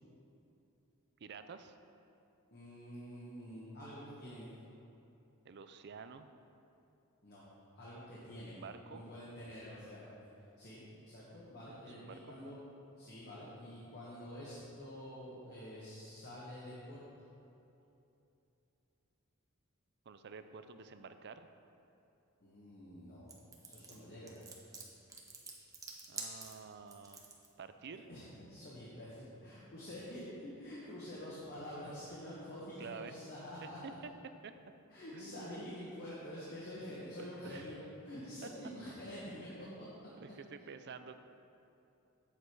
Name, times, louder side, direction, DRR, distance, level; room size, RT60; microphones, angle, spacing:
voice 1, 1.2-1.8 5.4-6.3 8.5-9.0 12.0-12.4 20.1-21.5 26.1-27.2 27.6-28.1 32.8-33.2 33.8-34.1 34.4-34.5 35.1-35.6 37.2-37.7 38.4-38.5 39.5-41.2, right 5 dB, 55° right, 10 dB, 0.5 m, -50 dB
voice 2, 2.5-4.5 7.2-7.4 7.8-8.6 8.9-10.3 10.6-12.6 13.0-17.0 22.4-23.3 23.6-24.3 28.1-34.0 34.9-39.9, equal, 50° left, -8 dB, 1.6 m, -47 dB
sound 1, 23.3-27.5, right 3 dB, 15° right, 1.0 m, -47 dB
8.4 x 7.8 x 4.6 m, 2.8 s
head